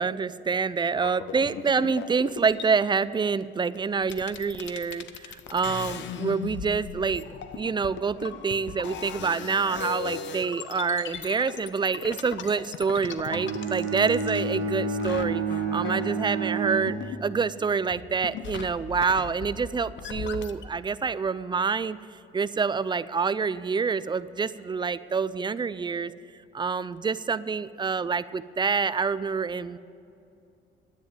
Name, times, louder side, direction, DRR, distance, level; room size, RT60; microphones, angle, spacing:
voice 1, 0.0-7.3 7.5-15.4 15.7-22.0 22.3-26.1 26.5-29.8, right 5 dB, 25° right, 16 dB, 0.4 m, -27 dB
sound 1, 0.9-2.9 3.8-3.9 4.0-14.7 15.0-17.6 17.9-20.6, left 7 dB, 70° left, 0.8 m, -38 dB
Bowed string instrument, 13.3-17.6, right 4 dB, 80° right, 1.6 m, -30 dB
10.5 x 9.1 x 8.9 m, 2.7 s
cardioid pair, 90°, 20 cm